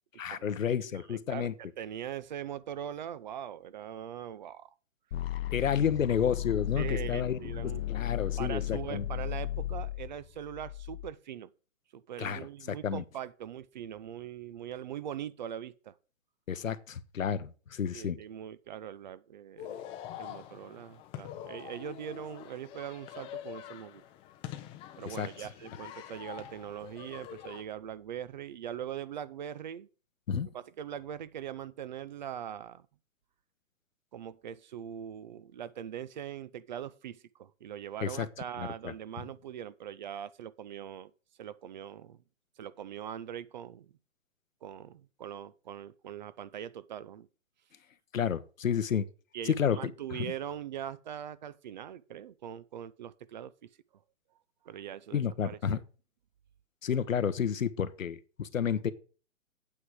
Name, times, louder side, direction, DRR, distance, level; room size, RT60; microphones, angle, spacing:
voice 1, 0.2-1.5 5.5-7.4 7.9-9.1 12.2-13.0 16.5-18.2 25.1-25.5 30.3-30.5 38.0-38.3 38.6-38.9 48.1-49.0 49.4-50.3 55.1-55.8 56.8-58.9, left 8 dB, 85° left, 1.1 m, -31 dB
voice 2, 1.1-4.7 6.8-7.8 8.4-11.5 11.9-15.9 17.9-19.9 20.2-24.0 25.0-29.9 30.5-32.8 34.1-41.1 41.4-42.2 42.6-43.9 44.6-47.3 49.3-53.7 54.6-55.8, right 10 dB, 40° right, 0.4 m, -41 dB
sound 1, 5.1-11.1, left 13 dB, 50° left, 0.9 m, -35 dB
sound 2, 19.6-27.6, left 11 dB, 15° left, 0.6 m, -45 dB
8.7 x 8.2 x 4.8 m
hypercardioid pair, 140°, 38 cm